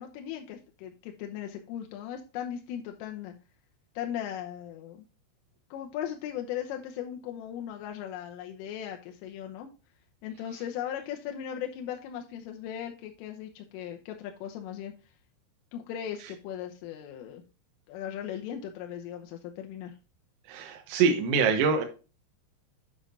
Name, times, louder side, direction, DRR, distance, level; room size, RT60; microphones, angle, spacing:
voice 1, 0.0-3.3 4.0-5.0 5.7-9.7 10.2-14.9 15.7-17.4 17.9-20.0, left 10 dB, 80° left, 3 dB, 3.3 m, -38 dB
voice 2, 20.5-21.8, right 5 dB, 90° right, 3 dB, 3.8 m, -24 dB
8.6 x 7.3 x 2.6 m, 0.32 s
omnidirectional pair, 5.9 m